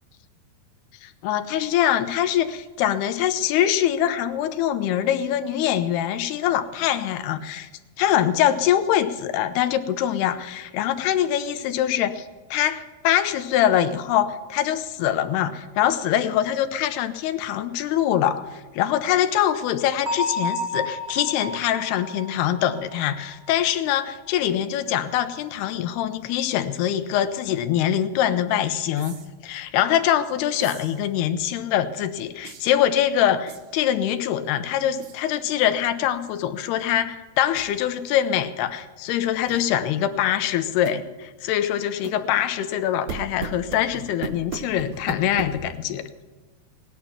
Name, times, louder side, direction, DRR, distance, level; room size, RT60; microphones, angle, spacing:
voice 1, 1.0-7.7 8.0-12.3 12.5-29.2 29.4-46.1, left 11 dB, 85° left, 9 dB, 2.9 m, -23 dB
Bell, 20.1-23.7, left 2 dB, 20° right, 0.5 m, -31 dB
sound 1, 29.0-29.3 30.6-31.0 32.4-32.8 33.5-33.9 35.0-35.2 35.8-36.1 36.4-36.5 37.5-37.7 39.5-39.7 40.8-41.0 42.0-42.2 43.1-45.8, right 6 dB, 60° right, 1.9 m, -37 dB
18.5 x 11.0 x 5.9 m, 1.3 s
omnidirectional pair, 4.5 m